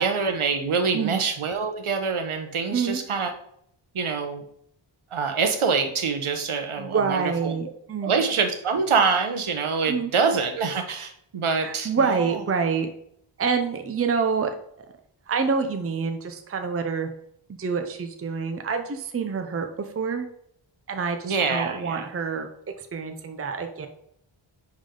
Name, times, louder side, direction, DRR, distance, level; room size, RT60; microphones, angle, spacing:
voice 1, 0.0-3.3 3.9-4.4 5.1-7.5 8.0-12.4 21.2-22.1, right 5 dB, 80° right, 6 dB, 1.1 m, -25 dB
voice 2, 6.8-8.2 9.9-10.1 11.6-12.9 13.4-14.6 15.3-17.1 17.6-20.3 20.9-22.5 22.8-23.9, right 5 dB, 30° right, 6 dB, 0.6 m, -27 dB
10.0 x 3.7 x 3.8 m, 0.71 s
wide cardioid pair, 120°, 49 cm